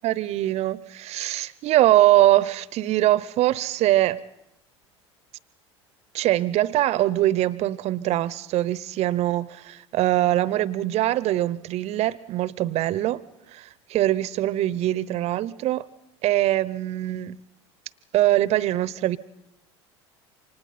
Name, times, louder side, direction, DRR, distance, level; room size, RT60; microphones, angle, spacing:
voice 1, 0.0-4.2 6.1-13.2 13.5-15.8 16.2-17.4 18.1-19.2, right 14 dB, 45° right, 0.8 m, -22 dB
29.0 x 25.5 x 4.2 m
figure-of-eight pair, 70°, 15 cm